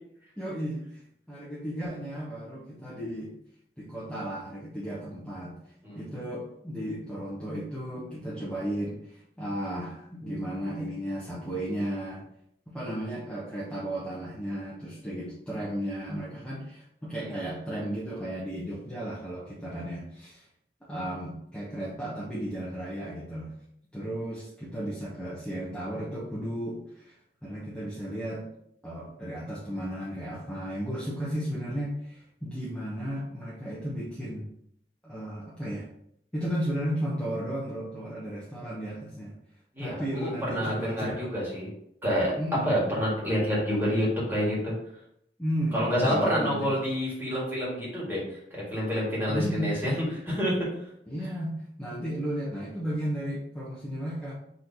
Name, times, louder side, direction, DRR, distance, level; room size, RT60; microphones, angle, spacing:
voice 1, 0.4-3.3 3.8-5.6 5.9-12.2 12.7-20.4 20.9-23.5 23.9-28.4 28.8-34.5 35.0-35.9 36.3-39.3 39.8-41.2 42.4-42.7 45.4-46.8 49.3-49.7 51.1-54.3, equal, 5° left, -8 dB, 0.8 m, -34 dB
voice 2, 39.7-41.7 42.0-42.3 42.6-44.7 45.7-50.5, equal, 10° right, -6 dB, 1.7 m, -28 dB
4.1 x 3.1 x 4.0 m, 0.74 s
head